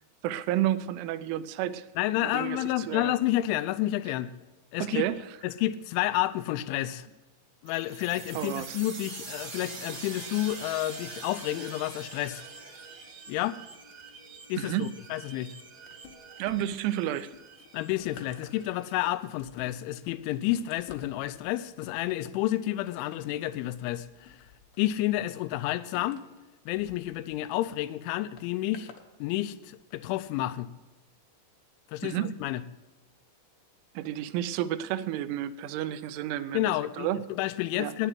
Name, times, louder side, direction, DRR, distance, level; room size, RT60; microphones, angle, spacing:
voice 1, 0.2-1.9 2.2-2.6 2.9-3.1 4.8-5.2 8.4-8.8 14.6-14.9 16.4-17.3 32.0-32.3 34.0-37.2 37.8-37.9, right 12 dB, 90° right, 13 dB, 3.1 m, -31 dB
voice 2, 2.0-4.3 4.7-5.1 5.4-7.1 7.6-12.4 13.3-13.6 14.5-15.5 17.7-24.4 24.8-26.2 26.7-28.9 29.2-30.7 31.9-32.6 36.5-38.1, left 15 dB, 90° left, 13 dB, 3.0 m, -30 dB
sound 1, 7.7-19.1, right 4 dB, 55° right, 1.4 m, -45 dB
sound 2, 15.9-16.9 17.3-27.6 28.4-29.1 29.8-29.9, left 8 dB, 70° left, 2.9 m, -52 dB
9.9 x 8.0 x 7.6 m, 1.1 s
omnidirectional pair, 5.4 m